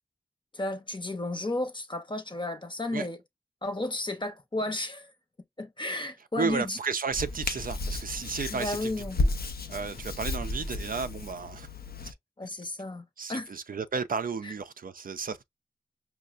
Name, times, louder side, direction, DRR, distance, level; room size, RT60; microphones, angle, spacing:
voice 1, 0.5-3.2 3.6-5.1 5.6-6.8 8.5-9.2 12.4-13.5, left 2 dB, 30° left, 0.7 m, -33 dB
voice 2, 6.2-9.3 9.7-11.7 12.0-12.1 13.2-15.4, right 5 dB, 60° right, 0.4 m, -33 dB
Hands, 7.1-12.1, left 2 dB, 70° left, 0.5 m, -33 dB
5.3 x 2.0 x 2.4 m
wide cardioid pair, 50°, 16 cm